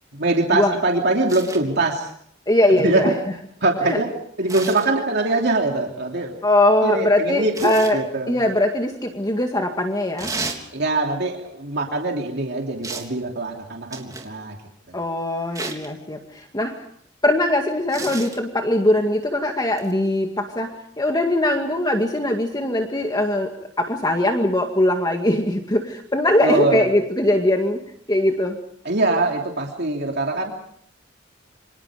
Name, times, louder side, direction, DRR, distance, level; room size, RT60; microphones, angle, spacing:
voice 1, 0.2-2.1 2.8-3.0 3.6-4.1 4.4-6.4 6.8-8.4 10.7-14.6 14.9-15.0 26.4-26.8 28.8-30.5, right 2 dB, 60° right, 1 dB, 3.2 m, -23 dB
sound 1, 1.3-1.6 4.5-4.9 7.5-8.0 10.2-10.6 12.8-13.1 13.9-14.3 15.6-15.9 17.9-18.4 19.8-19.9, right 3 dB, 20° right, 3.5 m, -32 dB
voice 2, 2.5-3.1 3.9-4.0 6.4-8.0 8.3-10.3 14.9-16.7 17.2-23.5 23.8-27.8 28.1-28.6, left 1 dB, 20° left, 3 dB, 2.0 m, -21 dB
28.5 x 26.0 x 5.1 m, 0.65 s
head